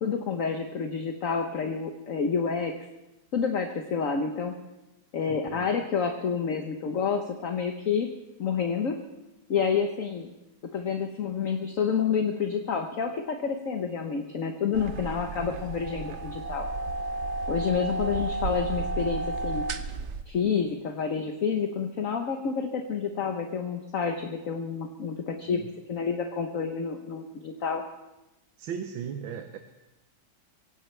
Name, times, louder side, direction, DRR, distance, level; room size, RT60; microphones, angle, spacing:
voice 1, 0.0-2.7 3.3-4.6 5.1-8.1 8.4-8.9 9.5-10.3 10.7-16.7 17.5-19.7 20.3-25.6 25.9-27.8, left 6 dB, 50° left, 4 dB, 1.2 m, -29 dB
voice 2, 5.3-5.7 25.5-25.7 28.6-29.6, right 7 dB, 80° right, 6 dB, 1.7 m, -37 dB
sound 1, 14.7-20.2, right 3 dB, 55° right, 0.8 m, -32 dB
25.5 x 17.0 x 3.3 m, 0.98 s
omnidirectional pair, 2.2 m